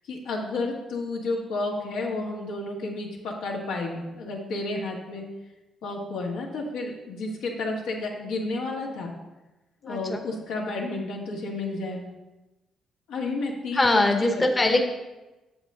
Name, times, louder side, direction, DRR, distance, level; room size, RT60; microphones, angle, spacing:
voice 1, 0.1-5.2 5.8-9.1 9.8-12.1 13.1-14.7, left 2 dB, 90° left, -1 dB, 1.6 m, -31 dB
voice 2, 9.8-10.2 13.7-14.8, left 2 dB, 20° left, 4 dB, 0.8 m, -22 dB
7.9 x 7.2 x 3.8 m, 1.1 s
cardioid pair, 90°, 0 cm